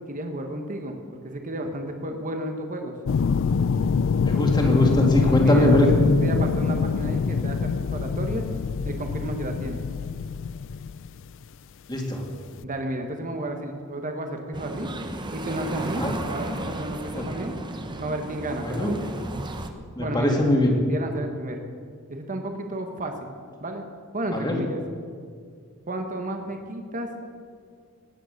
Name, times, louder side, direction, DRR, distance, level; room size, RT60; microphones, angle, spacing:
voice 1, 0.1-1.0 1.2-2.9 5.4-5.7 6.2-8.5 8.8-9.8 12.6-14.9 15.3-17.5 18.0-19.1 20.0-20.4 20.9-21.6 22.1-23.3 23.6-23.8 24.1-24.8 25.9-27.2, right 1 dB, 35° right, 4 dB, 1.2 m, -32 dB
sound 1, 3.1-11.2 12.6-12.7, left 5 dB, 60° left, 0.4 m, -25 dB
voice 2, 4.2-5.9 11.9-12.2 16.0-16.1 18.7-18.9 20.0-20.7 24.3-24.5, left 1 dB, 20° left, 1 dB, 2.3 m, -21 dB
sound 2, 14.5-19.7, right 1 dB, 20° right, 0.9 m, -34 dB
18.5 x 9.1 x 6.5 m, 2.1 s
head